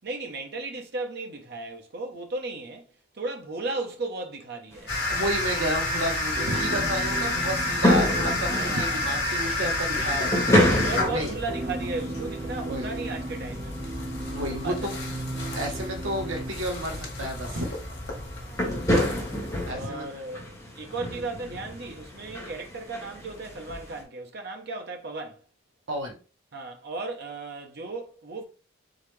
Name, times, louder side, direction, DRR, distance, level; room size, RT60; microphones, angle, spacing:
voice 1, 0.0-2.9 3.1-4.9 8.4-9.1 10.3-14.0 14.6-14.9 18.4-19.1 19.7-25.4 26.5-28.4, right 3 dB, 50° right, 0.9 m, -36 dB
sound 1, 4.7-24.0, left 1 dB, 15° left, 1.2 m, -31 dB
sound 2, 4.9-19.7, left 2 dB, 50° left, 1.5 m, -30 dB
voice 2, 5.1-11.3 12.6-12.9 14.2-14.9 15.5-17.7 19.7-20.1 25.9-26.2, right 1 dB, 70° right, 1.1 m, -31 dB
sound 3, 6.3-16.5, right 2 dB, 25° right, 0.3 m, -37 dB
3.9 x 3.9 x 3.2 m
head